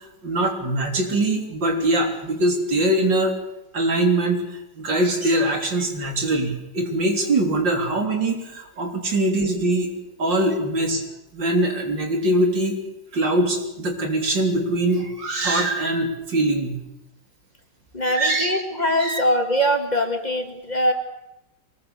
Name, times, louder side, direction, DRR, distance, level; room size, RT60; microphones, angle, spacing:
voice 1, 0.2-3.3 3.7-9.9 10.2-11.0 11.3-12.8 13.1-16.8 18.1-18.6 19.0-19.2, right 1 dB, 90° right, 3 dB, 4.2 m, -22 dB
voice 2, 17.9-20.9, equal, 25° left, 5 dB, 2.5 m, -22 dB
24.0 x 21.0 x 6.8 m, 0.91 s
omnidirectional pair, 1.9 m